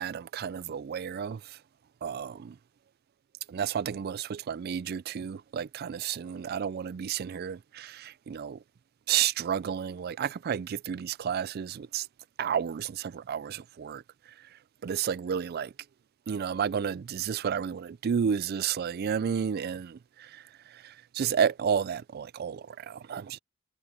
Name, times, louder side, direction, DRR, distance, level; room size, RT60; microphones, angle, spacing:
voice 1, 0.0-1.6 2.0-2.6 3.5-8.6 9.1-12.1 12.4-14.0 14.8-15.7 16.3-23.4, right 8 dB, 45° right, 0.3 m, -31 dB
head